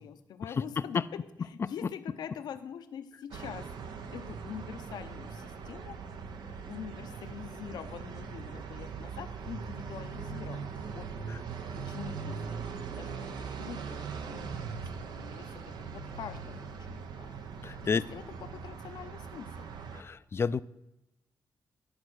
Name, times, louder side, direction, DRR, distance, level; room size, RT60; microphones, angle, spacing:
voice 1, 0.0-6.0 6.4-11.1 11.7-17.3 17.6-19.7, left 8 dB, 80° left, 0.7 m, -45 dB
sound 1, 3.3-20.0, right 5 dB, 80° right, 0.8 m, -41 dB
voice 2, 17.6-18.0 19.9-20.6, left 5 dB, 35° left, 0.3 m, -30 dB
11.5 x 4.8 x 6.2 m
cardioid pair, 95°, 7 cm